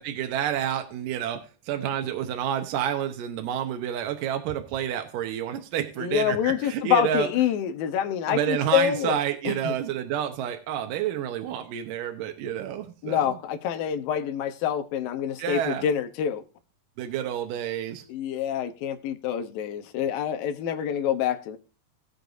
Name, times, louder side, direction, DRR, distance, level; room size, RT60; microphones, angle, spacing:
voice 1, 0.0-7.3 8.3-13.4 15.4-15.9 17.0-18.0, right 10 dB, 75° right, 2.6 m, -29 dB
voice 2, 6.0-9.2 9.5-9.8 13.0-16.4 18.1-21.6, left 9 dB, 90° left, 2.7 m, -26 dB
19.5 x 6.6 x 2.6 m
omnidirectional pair, 4.0 m